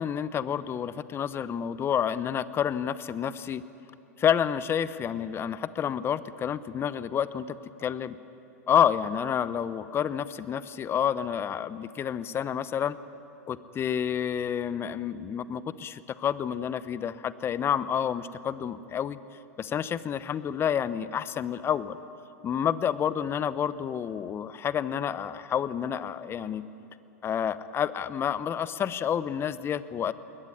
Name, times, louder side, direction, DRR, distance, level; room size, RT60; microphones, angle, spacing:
voice 1, 0.0-3.6 4.2-8.2 8.7-13.0 13.5-19.2 19.6-22.0 22.4-26.6 27.2-30.1, left 8 dB, 25° left, 15 dB, 0.9 m, -29 dB
21.0 x 19.0 x 9.8 m, 3.0 s
hypercardioid pair, 100°, 9 cm